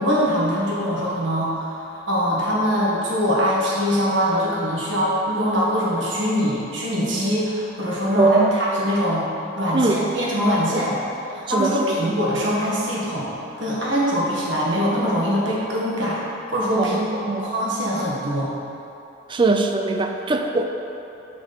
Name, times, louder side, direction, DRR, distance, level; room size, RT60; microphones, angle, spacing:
voice 1, 0.0-9.3 9.5-11.0 11.3-13.3 13.6-16.2 16.5-18.5, equal, 70° right, -6 dB, 1.5 m, -23 dB
voice 2, 8.2-8.5 9.7-10.0 11.5-12.0 16.8-17.5 19.3-20.7, right 3 dB, 25° right, 4 dB, 0.4 m, -21 dB
6.0 x 4.0 x 5.8 m, 3.0 s
head